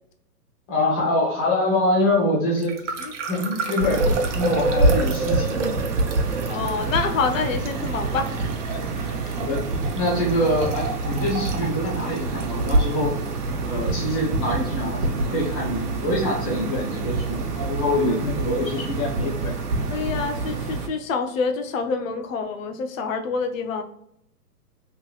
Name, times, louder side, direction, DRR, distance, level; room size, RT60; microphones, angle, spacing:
voice 1, 0.7-2.8 3.3-4.0 4.3-5.8 9.3-9.6 9.9-13.2 13.6-19.6, left 1 dB, 15° left, -4 dB, 0.8 m, -25 dB
sound 1, 2.6-13.4, right 3 dB, 50° right, 0.8 m, -31 dB
sound 2, 3.8-20.9, right 3 dB, 75° right, 1.1 m, -26 dB
voice 2, 6.5-8.3 8.7-9.2 18.1-18.2 19.9-23.8, left 5 dB, 55° left, 6 dB, 0.7 m, -27 dB
3.7 x 3.0 x 2.3 m, 0.72 s
hypercardioid pair, 155°, 47 cm